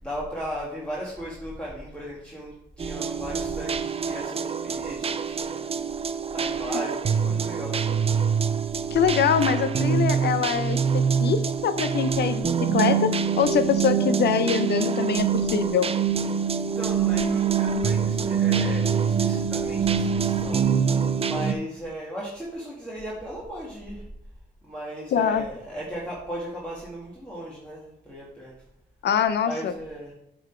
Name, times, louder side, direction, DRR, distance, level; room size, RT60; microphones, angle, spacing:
voice 1, 0.0-5.7 6.3-8.2 16.7-20.9 21.2-24.1 24.6-28.5 29.4-30.1, equal, 5° left, -6 dB, 1.9 m, -36 dB
sound 1, 2.8-21.5, right 6 dB, 30° right, 0.5 m, -25 dB
voice 2, 8.9-13.1 13.4-15.9 25.1-25.5 29.0-29.7, left 8 dB, 60° left, 12 dB, 0.7 m, -24 dB
7.8 x 4.0 x 4.5 m, 0.80 s
cardioid pair, 90°, 20 cm